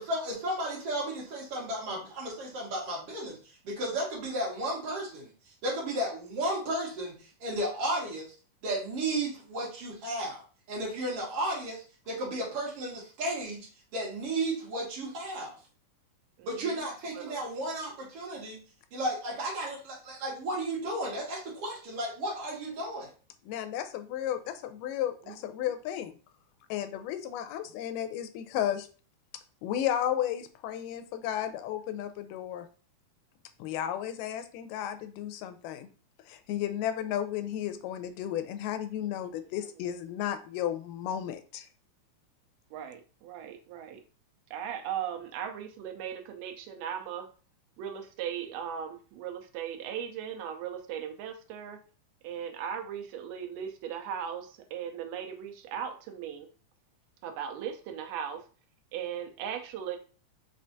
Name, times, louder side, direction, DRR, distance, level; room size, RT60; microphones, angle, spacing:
voice 1, 0.0-3.4 3.6-5.3 5.6-7.1 7.4-8.3 8.6-10.4 10.7-13.7 13.9-15.6 16.4-18.6 18.9-23.1, right 1 dB, 55° right, -4 dB, 2.3 m, -33 dB
voice 2, 23.4-26.2 26.7-28.9 29.6-32.7 33.6-35.9 36.3-41.7, left 10 dB, 90° left, 10 dB, 2.1 m, -33 dB
voice 3, 42.7-44.0 44.5-47.3 47.8-51.8 52.2-56.5 57.2-58.4 58.9-60.0, right 8 dB, 85° right, 4 dB, 2.2 m, -38 dB
5.3 x 3.3 x 2.6 m, 0.38 s
omnidirectional pair, 3.7 m